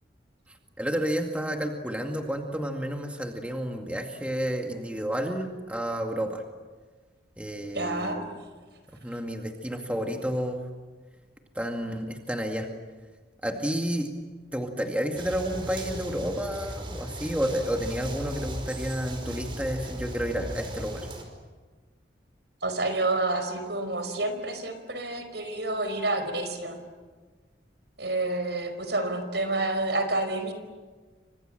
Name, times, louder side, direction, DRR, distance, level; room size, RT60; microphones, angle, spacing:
voice 1, 0.8-6.4 7.4-8.3 9.0-10.7 11.5-12.7 13.4-14.1 14.5-21.1, equal, 5° right, 2 dB, 2.1 m, -30 dB
voice 2, 7.7-8.2 9.1-9.2 22.6-26.8 28.0-30.5, right 2 dB, 70° right, 8 dB, 5.0 m, -29 dB
sound 1, 15.2-21.2, right 1 dB, 30° right, 4.9 m, -37 dB
29.5 x 26.0 x 7.8 m, 1.4 s
head